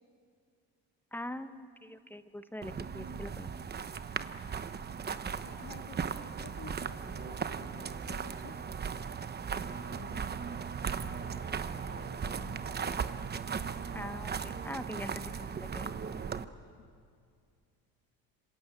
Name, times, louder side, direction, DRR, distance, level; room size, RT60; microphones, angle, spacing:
voice 1, 1.1-3.5 13.9-15.9, left 1 dB, 5° left, 10 dB, 1.0 m, -43 dB
sound 1, 2.6-16.4, right 6 dB, 25° right, 1.0 m, -37 dB
voice 2, 5.4-8.5 9.7-13.1 16.8-16.9, left 7 dB, 50° left, 3 dB, 2.1 m, -52 dB
26.5 x 26.5 x 8.2 m, 2.2 s
cardioid pair, 120°, 38 cm